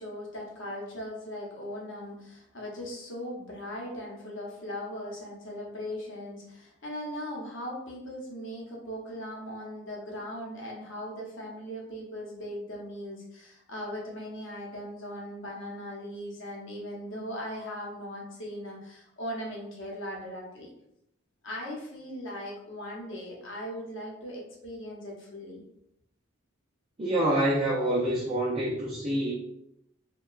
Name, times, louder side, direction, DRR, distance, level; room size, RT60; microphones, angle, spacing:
voice 1, 0.0-20.7 21.4-25.6, equal, 65° left, -3 dB, 0.8 m, -39 dB
voice 2, 27.0-29.3, right 1 dB, 30° right, -8 dB, 0.4 m, -26 dB
2.8 x 2.2 x 2.3 m, 0.80 s
head